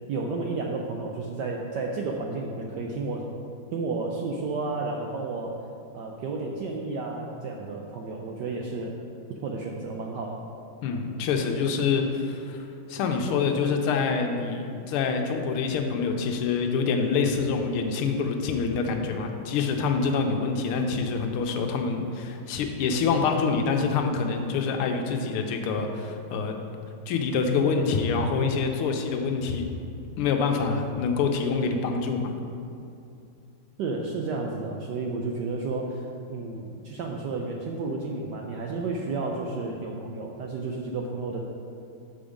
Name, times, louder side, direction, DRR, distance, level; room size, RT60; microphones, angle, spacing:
voice 1, 0.1-3.2 3.7-5.5 5.9-9.0 9.4-10.4 33.8-41.4, right 3 dB, 80° right, 0 dB, 1.0 m, -32 dB
voice 2, 10.8-26.5 27.1-29.6 30.2-32.3, left 5 dB, 90° left, 4 dB, 1.6 m, -26 dB
7.0 x 5.2 x 5.0 m, 2.6 s
omnidirectional pair, 2.4 m